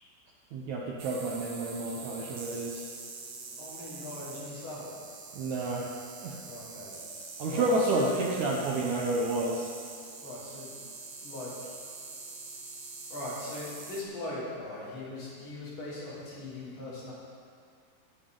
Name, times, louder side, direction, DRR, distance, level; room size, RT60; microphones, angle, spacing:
voice 1, 0.5-2.9 5.3-5.9 6.2-6.4 7.4-9.7, right 2 dB, 80° right, -2 dB, 1.6 m, -30 dB
sound 1, 1.0-14.0, right 4 dB, 50° right, 2.0 m, -44 dB
voice 2, 3.6-5.0 6.4-6.9 7.4-8.2 10.2-10.7 11.2-11.6 13.1-17.1, left 2 dB, 55° left, -9 dB, 5.1 m, -40 dB
19.0 x 9.3 x 3.9 m, 2.2 s
omnidirectional pair, 4.6 m